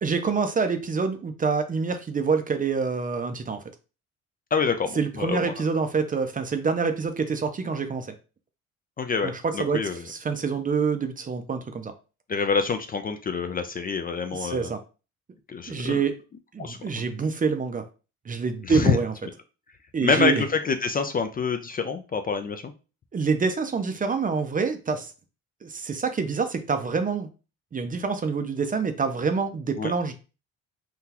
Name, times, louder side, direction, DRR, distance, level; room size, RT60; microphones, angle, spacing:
voice 1, 0.0-3.6 5.0-8.1 9.2-11.9 14.3-14.8 15.7-16.1 16.5-17.8 18.3-19.1 19.9-20.4 23.1-25.1 25.6-27.3 27.7-30.1, right 5 dB, 30° right, 0.5 m, -26 dB
voice 2, 4.5-5.5 9.0-10.0 12.3-14.7 15.5-16.0 16.6-17.0 18.6-19.0 20.0-22.6 29.8-29.9, left 5 dB, 30° left, 0.4 m, -26 dB
3.7 x 2.3 x 2.8 m
cardioid pair, 90°, 30 cm